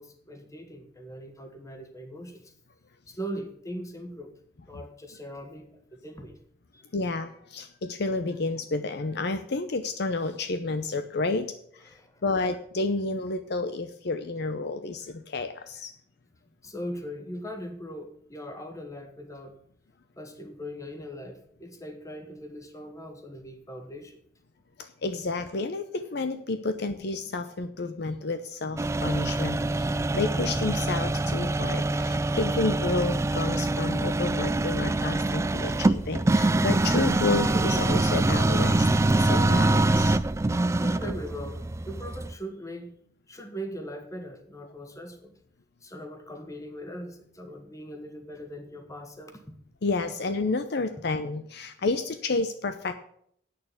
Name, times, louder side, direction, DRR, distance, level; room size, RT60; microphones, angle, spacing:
voice 1, 0.0-2.5 3.1-4.3 4.7-6.4 6.7-6.8 11.8-12.2 16.6-19.6 20.2-24.2 40.6-42.9 43.3-45.4 45.8-49.4, equal, 20° left, 5 dB, 1.5 m, -40 dB
voice 2, 6.9-11.5 11.7-11.9 12.2-15.9 24.8-38.9 39.1-40.2 49.8-52.9, left 3 dB, 65° left, 9 dB, 0.7 m, -30 dB
sound 1, 28.8-42.3, right 2 dB, 15° right, 0.3 m, -25 dB
8.8 x 6.7 x 8.2 m, 0.66 s
head